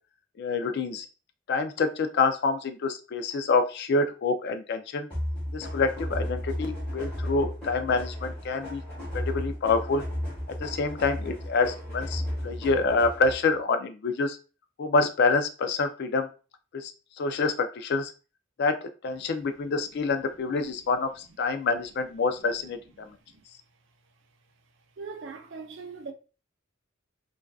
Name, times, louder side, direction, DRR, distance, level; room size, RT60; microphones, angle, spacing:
voice 1, 0.4-1.1 1.5-5.1 5.5-8.8 9.1-10.0 10.6-14.4 14.8-16.3 16.7-16.9 17.2-18.1 18.6-22.8, left 4 dB, 55° left, 0.3 m, -27 dB
sound 1, 5.1-13.5, left 1 dB, 5° left, 1.1 m, -34 dB
voice 2, 23.0-23.4 25.0-26.1, right 4 dB, 60° right, 0.4 m, -41 dB
2.4 x 2.3 x 2.3 m
head